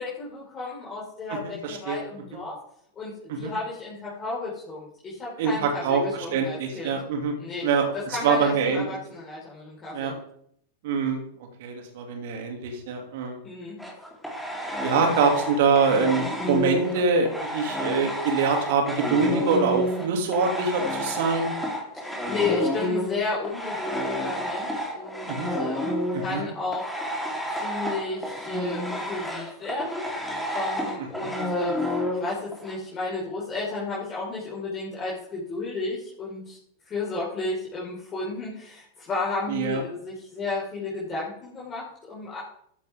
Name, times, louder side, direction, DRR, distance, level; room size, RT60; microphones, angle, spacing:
voice 1, 0.0-2.6 2.9-7.0 7.4-10.1 13.4-13.7 21.9-26.8 27.5-30.1 30.5-36.6 36.8-42.4, left 3 dB, 25° left, -6 dB, 5.1 m, -33 dB
voice 2, 1.6-2.0 3.3-3.5 5.4-7.3 7.6-8.9 9.9-10.1 10.8-11.2 11.6-13.4 14.8-21.5 25.3-25.5 26.1-26.4 39.5-39.8, right 5 dB, 55° right, 3 dB, 2.8 m, -24 dB
sound 1, 13.8-20.1 20.3-32.7, left 1 dB, ahead, 3.8 m, -30 dB
15.0 x 11.0 x 3.7 m, 0.68 s
figure-of-eight pair, 90°, 0 cm